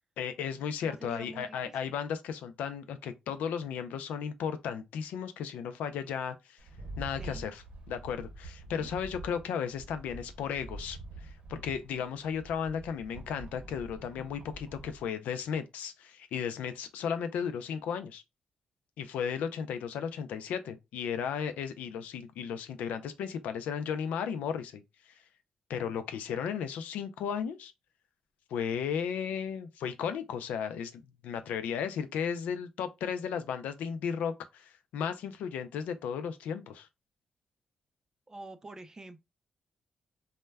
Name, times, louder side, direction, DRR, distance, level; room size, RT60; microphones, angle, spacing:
voice 1, 0.2-6.6 7.0-18.2 19.0-24.8 25.7-27.7 28.5-36.9, left 7 dB, 90° left, 0.3 m, -35 dB
voice 2, 0.8-1.9 7.2-7.4 8.8-8.9 38.3-39.2, right 2 dB, 25° right, 0.4 m, -47 dB
Rattle, 6.6-15.0, right 2 dB, 55° right, 0.7 m, -46 dB
2.2 x 2.1 x 3.2 m
cardioid pair, 75°, 2 cm